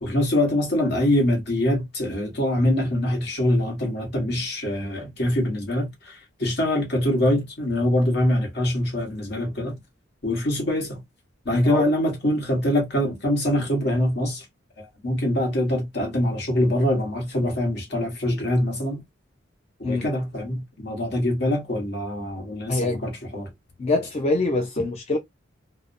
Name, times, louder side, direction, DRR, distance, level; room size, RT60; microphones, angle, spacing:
voice 1, 0.0-9.7 10.2-11.0 11.4-14.5 14.8-19.0 19.9-23.5, left 1 dB, 55° left, 1.1 m, -24 dB
voice 2, 11.5-11.8 19.8-20.1 22.7-23.0 23.8-25.2, left 2 dB, 30° left, 0.4 m, -24 dB
2.6 x 2.1 x 2.5 m
head